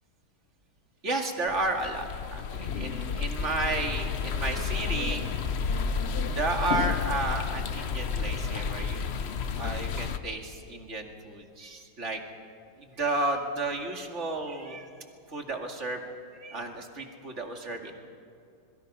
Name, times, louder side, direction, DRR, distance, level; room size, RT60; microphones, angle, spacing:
voice 1, 1.0-5.2 6.4-9.0 9.6-12.2 12.8-14.9 15.3-16.0 16.3-17.9, right 2 dB, 35° right, 2 dB, 2.4 m, -32 dB
sound 1, 1.5-10.2, left 5 dB, 90° left, 0.5 m, -31 dB
27.0 x 22.5 x 5.5 m, 2.4 s
omnidirectional pair, 2.3 m